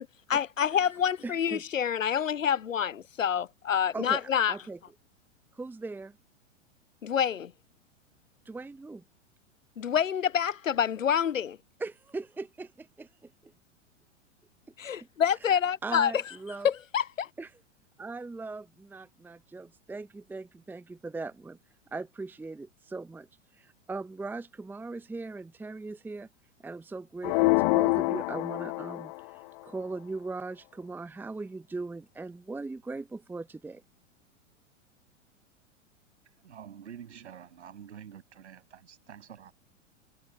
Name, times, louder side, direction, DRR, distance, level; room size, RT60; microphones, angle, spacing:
voice 1, 0.3-4.5 7.0-7.5 9.8-11.6 14.8-16.1 16.6-17.3, left 8 dB, 85° left, 0.5 m, -27 dB
voice 2, 1.2-1.6 3.9-4.8 5.5-6.2 8.4-9.0 11.8-13.5 15.4-16.7 17.4-17.5 18.0-21.6 21.9-23.3 23.5-26.3 26.6-33.8, right 3 dB, 5° right, 1.1 m, -39 dB
sound 1, 27.2-29.3, left 28 dB, 35° left, 0.8 m, -26 dB
voice 3, 36.4-39.5, right 9 dB, 60° right, 7.9 m, -47 dB
figure-of-eight pair, 100°, 38 cm